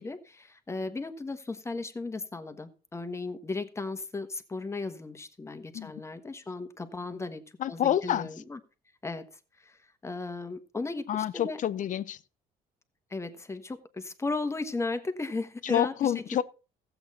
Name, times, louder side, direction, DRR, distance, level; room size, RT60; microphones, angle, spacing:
voice 1, 0.0-8.6 9.0-9.3 10.0-11.6 13.1-16.2, left 3 dB, 15° left, 1.2 m, -36 dB
voice 2, 7.6-8.3 11.1-12.2 15.6-16.4, left 11 dB, 50° left, 0.6 m, -28 dB
14.5 x 8.1 x 4.2 m
cardioid pair, 110°, 17 cm